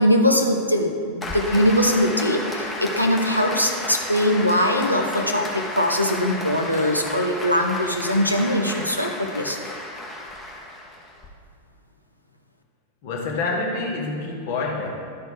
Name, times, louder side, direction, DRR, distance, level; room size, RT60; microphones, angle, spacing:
voice 1, 0.0-9.6, equal, 90° left, 2 dB, 0.8 m, -21 dB
Applause, 1.2-11.3, left 1 dB, 15° left, 1.1 m, -33 dB
voice 2, 13.0-14.9, left 3 dB, 50° left, -1 dB, 1.5 m, -27 dB
11.5 x 4.4 x 4.8 m, 2.2 s
figure-of-eight pair, 90°, 0 cm